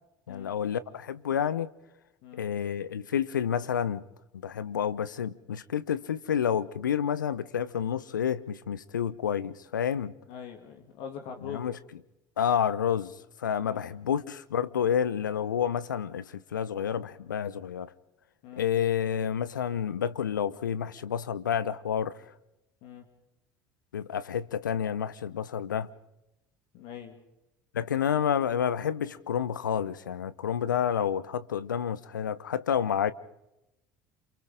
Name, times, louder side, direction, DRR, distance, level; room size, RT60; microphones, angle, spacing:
voice 1, 0.3-1.7 2.3-4.0 4.3-10.1 11.4-11.8 12.4-13.1 13.4-17.9 18.6-22.2 23.9-25.9 27.7-33.1, left 8 dB, 80° left, 0.8 m, -29 dB
voice 2, 10.3-11.7 13.6-13.9 18.4-18.7 22.8-23.0 26.7-27.2, left 8 dB, 60° left, 2.6 m, -43 dB
28.5 x 27.5 x 3.8 m
figure-of-eight pair, 65°, 10 cm